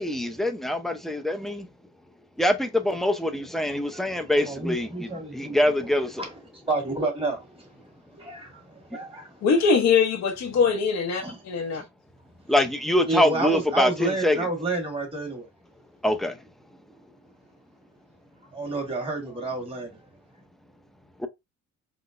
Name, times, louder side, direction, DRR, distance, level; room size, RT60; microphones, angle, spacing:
voice 1, 0.0-1.7 2.4-6.2 12.5-14.5 16.0-16.4 21.2-21.3, left 1 dB, ahead, 0.5 m, -24 dB
voice 2, 3.8-9.4 11.2-11.4 11.7-11.9 13.1-15.5 18.4-20.1 20.3-20.4, right 2 dB, 20° right, 1.6 m, -31 dB
voice 3, 9.4-11.8, left 5 dB, 60° left, 0.7 m, -22 dB
3.8 x 2.0 x 2.4 m
cardioid pair, 90°, 30 cm